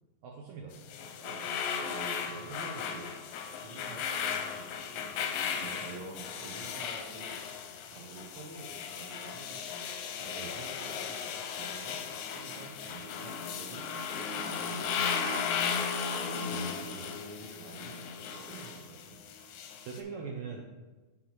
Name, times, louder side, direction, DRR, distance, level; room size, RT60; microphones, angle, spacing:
voice 1, 0.2-0.7 5.6-5.8 8.3-8.4 10.4-10.5 16.5-17.1 19.8-20.6, right 5 dB, 75° right, 0 dB, 1.8 m, -42 dB
sound 1, 0.7-20.0, left 6 dB, 80° left, 1.9 m, -36 dB
voice 2, 1.8-3.2 3.6-5.1 5.5-7.4 7.9-9.6 10.1-12.0 12.3-15.2 16.0-16.4 16.7-19.1, right 2 dB, 55° right, -1 dB, 1.3 m, -48 dB
6.4 x 3.9 x 5.9 m, 1.2 s
omnidirectional pair, 3.9 m